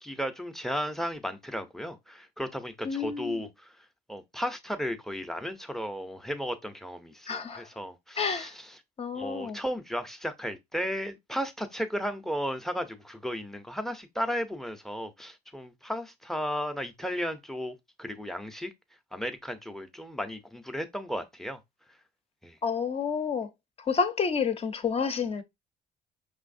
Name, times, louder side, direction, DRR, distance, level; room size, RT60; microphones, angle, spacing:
voice 1, 0.0-3.7 4.1-8.7 9.1-18.7 19.1-21.6 22.4-22.6, equal, ahead, 0.7 m, -34 dB
voice 2, 2.8-3.4 7.3-7.7 8.2-8.5 9.0-9.6 22.6-23.5 23.8-25.4, left 6 dB, 35° left, 0.8 m, -29 dB
5.5 x 3.1 x 2.5 m
cardioid pair, 110°, 17 cm